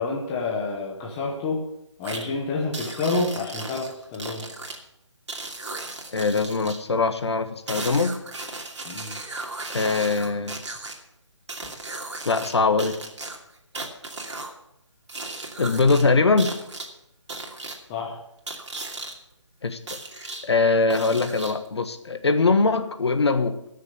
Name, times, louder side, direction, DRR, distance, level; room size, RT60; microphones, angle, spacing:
voice 1, 0.0-1.6 2.0-4.5 8.8-9.2 17.9-18.2, left 3 dB, 10° left, -2 dB, 0.9 m, -28 dB
sound 1, 2.0-2.2 2.7-4.8 5.3-6.8 7.7-10.9 11.5-12.5 12.8-14.5 15.1-16.0 16.4-16.9 17.3-17.8 18.5-19.1 19.9-20.4 20.9-21.7, right 2 dB, 65° right, 2.6 m, -35 dB
voice 2, 6.1-8.2 9.7-10.6 12.2-12.9 15.6-16.5 19.6-23.6, left 4 dB, 60° left, 9 dB, 1.3 m, -22 dB
13.5 x 6.7 x 8.1 m, 0.80 s
hypercardioid pair, 170°, 16 cm